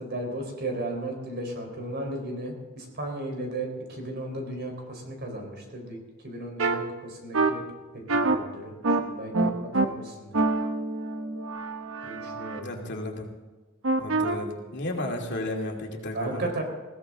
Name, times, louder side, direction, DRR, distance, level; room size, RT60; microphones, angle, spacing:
voice 1, 0.0-6.0 6.2-7.6 8.1-10.3 12.0-12.7 16.1-16.6, right 2 dB, 55° right, 2 dB, 4.5 m, -35 dB
sound 1, 6.6-6.8 7.3-7.5 8.1-8.4 8.8-9.0 9.3-9.9 10.3-12.6 13.8-14.4, right 3 dB, 70° right, 1.2 m, -25 dB
voice 2, 12.6-13.3 14.0-16.5, left 1 dB, 55° left, 1 dB, 2.6 m, -33 dB
21.0 x 16.5 x 3.9 m, 1.3 s
head